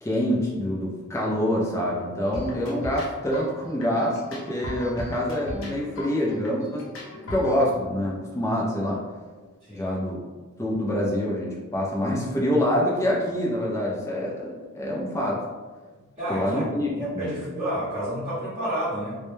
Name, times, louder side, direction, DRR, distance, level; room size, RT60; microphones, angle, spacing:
voice 1, 0.0-6.8 7.3-9.0 9.7-10.2 10.6-15.4 16.3-17.3, equal, 15° left, -3 dB, 0.3 m, -26 dB
sound 1, 2.3-7.6, left 1 dB, 60° left, 0.6 m, -37 dB
voice 2, 9.6-10.0 16.2-16.6 16.9-19.2, right 1 dB, 25° right, -13 dB, 0.8 m, -30 dB
2.2 x 2.0 x 3.0 m, 1.3 s
head